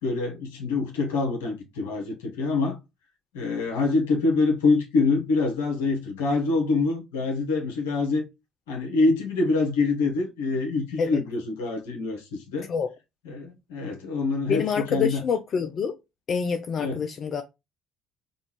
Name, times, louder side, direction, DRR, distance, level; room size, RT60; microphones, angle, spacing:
voice 1, 0.0-2.8 3.3-8.2 8.7-12.7 13.2-15.2 16.8-17.0, left 3 dB, 75° left, 1.1 m, -25 dB
voice 2, 14.5-15.9 16.3-17.4, left 6 dB, 45° left, 0.4 m, -26 dB
5.2 x 2.5 x 3.0 m
figure-of-eight pair, 55°, 0 cm